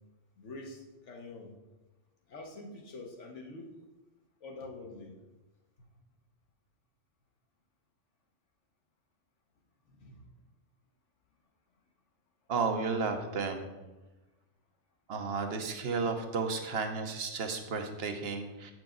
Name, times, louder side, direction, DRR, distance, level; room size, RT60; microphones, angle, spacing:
voice 1, 0.4-1.5 2.3-3.7 4.4-5.2 9.9-10.2, left 2 dB, 70° left, 2 dB, 1.4 m, -46 dB
voice 2, 12.5-13.7 15.1-18.7, right 4 dB, 55° right, 6 dB, 1.0 m, -33 dB
8.1 x 6.0 x 3.8 m, 1.1 s
omnidirectional pair, 1.3 m